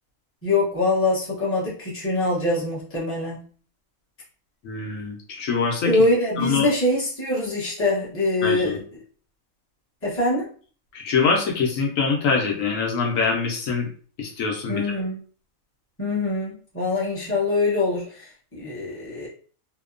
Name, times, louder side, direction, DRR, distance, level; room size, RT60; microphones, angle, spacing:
voice 1, 0.4-3.4 5.8-8.8 10.0-10.5 14.7-15.2 16.0-19.3, left 2 dB, 10° left, -6 dB, 0.7 m, -24 dB
voice 2, 4.6-5.9 6.4-6.7 8.4-8.8 10.9-13.9 14.2-14.8, left 5 dB, 70° left, -1 dB, 1.0 m, -24 dB
2.8 x 2.1 x 2.4 m, 0.43 s
omnidirectional pair, 1.5 m